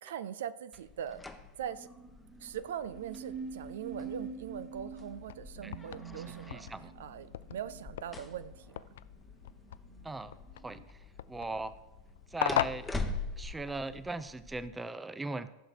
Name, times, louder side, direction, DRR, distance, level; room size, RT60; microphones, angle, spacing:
voice 1, 0.0-1.9 2.4-6.6 7.0-8.8, right 9 dB, 60° right, 15 dB, 0.5 m, -41 dB
sound 1, 0.7-14.7, left 3 dB, 10° left, 1.0 m, -45 dB
sound 2, 1.6-10.8, right 5 dB, 25° right, 1.7 m, -47 dB
sound 3, 5.1-13.8, left 12 dB, 60° left, 0.3 m, -40 dB
voice 2, 6.5-6.9 10.0-10.3 10.6-11.0 11.3-11.7 12.3-12.9 13.4-15.5, right 2 dB, 10° right, 14 dB, 0.5 m, -38 dB
15.0 x 6.4 x 4.7 m, 0.95 s
figure-of-eight pair, 90°, 0 cm